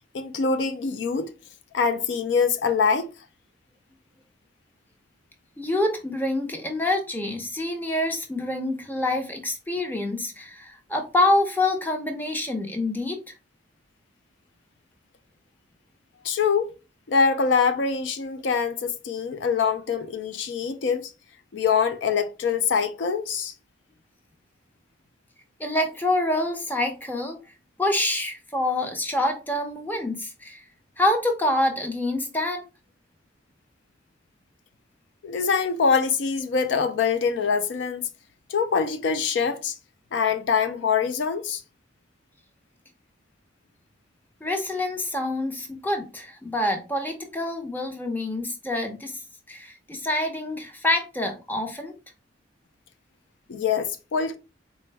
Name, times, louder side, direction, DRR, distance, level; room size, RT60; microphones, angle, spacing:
voice 1, 0.1-1.3 1.7-3.1 16.2-16.7 17.1-21.1 21.5-23.5 35.2-38.1 38.5-39.7 40.1-41.6 53.5-54.4, left 5 dB, 70° left, 0.4 m, -24 dB
voice 2, 5.6-13.2 25.6-27.4 27.8-30.6 31.0-32.6 44.4-49.1 49.5-51.9, left 1 dB, 10° left, 0.6 m, -26 dB
4.2 x 2.2 x 3.2 m
head